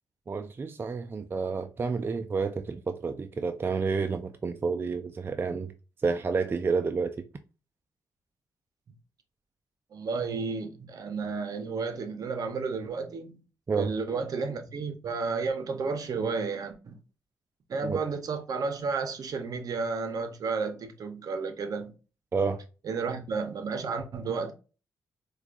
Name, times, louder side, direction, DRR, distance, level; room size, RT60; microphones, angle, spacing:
voice 1, 0.3-5.7 6.0-7.1 13.7-13.9 17.8-18.0 22.3-22.6, right 4 dB, 30° right, 0.3 m, -29 dB
voice 2, 9.9-13.4 13.7-17.0 17.7-21.9 22.8-24.5, right 4 dB, 60° right, 0.7 m, -32 dB
4.6 x 2.3 x 2.5 m
cardioid pair, 75°, 7 cm